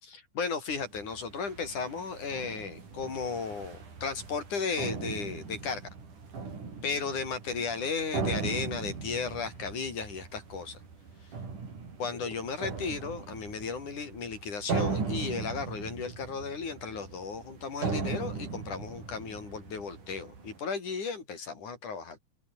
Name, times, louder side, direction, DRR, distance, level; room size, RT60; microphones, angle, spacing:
voice 1, 0.0-5.9 6.8-10.8 12.0-22.2, left 5 dB, 75° left, 6.4 m, -35 dB
sound 1, 0.7-20.6, right 4 dB, 80° right, 7.0 m, -38 dB
omnidirectional pair, 3.5 m